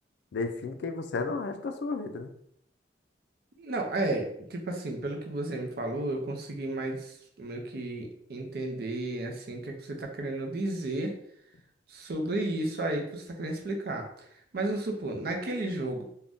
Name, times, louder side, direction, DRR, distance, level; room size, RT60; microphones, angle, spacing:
voice 1, 0.3-2.3, left 3 dB, 65° left, 7 dB, 0.3 m, -33 dB
voice 2, 3.6-11.1 11.9-14.1 14.5-16.1, right 2 dB, 55° right, 2 dB, 0.5 m, -33 dB
2.5 x 2.1 x 3.4 m, 0.69 s
head